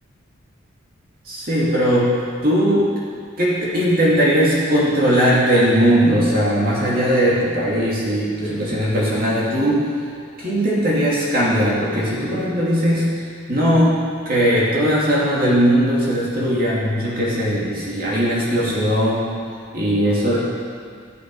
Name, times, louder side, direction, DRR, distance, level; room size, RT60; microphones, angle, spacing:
voice 1, 1.2-2.9 3.4-9.9 10.4-13.1 13.5-14.0 14.2-19.3 19.7-20.4, equal, 45° right, -6 dB, 2.7 m, -19 dB
13.0 x 9.3 x 5.5 m, 2.2 s
head